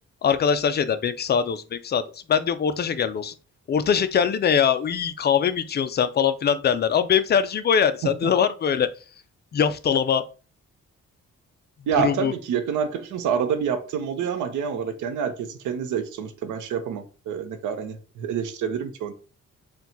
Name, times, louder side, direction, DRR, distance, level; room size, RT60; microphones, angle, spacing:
voice 1, 0.2-2.0 2.3-3.3 3.7-8.9 9.5-10.2 12.0-12.3, left 7 dB, 35° left, 0.4 m, -22 dB
voice 2, 11.9-19.1, right 7 dB, 85° right, 0.7 m, -27 dB
4.4 x 2.3 x 3.8 m
cardioid pair, 115°, 29 cm